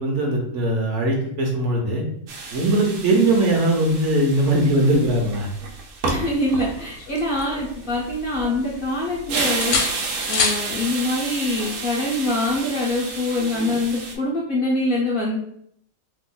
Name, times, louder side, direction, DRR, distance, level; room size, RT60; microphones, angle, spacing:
voice 1, 0.0-2.1 2.5-5.5, right 1 dB, 65° right, 0 dB, 0.9 m, -20 dB
sound 1, 2.3-14.1, right 3 dB, 90° right, 1.1 m, -31 dB
voice 2, 6.0-9.8 10.3-15.4, left 1 dB, 55° left, -5 dB, 0.6 m, -24 dB
sound 2, 6.5-8.0 8.4-9.2 9.6-10.7 12.5-12.7, left 5 dB, 75° left, 1.0 m, -28 dB
2.8 x 2.2 x 3.7 m, 0.69 s
omnidirectional pair, 1.5 m